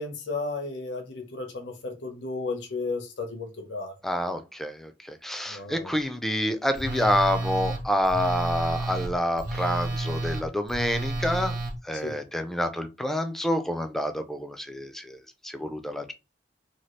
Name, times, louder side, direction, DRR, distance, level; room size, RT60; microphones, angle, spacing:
voice 1, 0.0-3.9 5.5-5.9 11.9-12.2, left 3 dB, 75° left, 0.8 m, -34 dB
voice 2, 4.0-11.5 11.9-15.2 15.4-16.1, equal, ahead, 0.3 m, -28 dB
Telephone, 6.7-11.7, right 2 dB, 50° right, 0.8 m, -31 dB
2.8 x 2.3 x 3.1 m
head